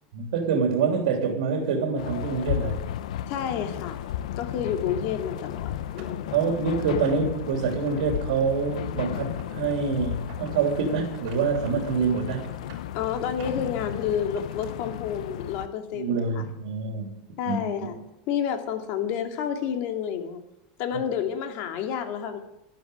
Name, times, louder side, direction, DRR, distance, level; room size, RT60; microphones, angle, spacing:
voice 1, 0.1-2.8 6.3-12.4 15.9-17.1 17.4-17.6, right 5 dB, 80° right, 2 dB, 3.4 m, -26 dB
sound 1, 2.0-15.7, left 11 dB, 85° left, 0.8 m, -34 dB
voice 2, 3.3-4.0 4.4-6.4 12.9-16.4 17.4-18.0 18.3-20.4 20.8-22.4, left 8 dB, 50° left, 5 dB, 2.5 m, -30 dB
sound 2, 5.3-5.4 5.8-7.4 7.8-8.2 8.4-10.5 11.0-11.7 12.0-12.9 13.3-14.7 15.6-15.7 16.2-16.3, right 5 dB, 45° right, 6.6 m, -50 dB
12.5 x 12.5 x 8.2 m, 0.85 s
supercardioid pair, 150°, 4 cm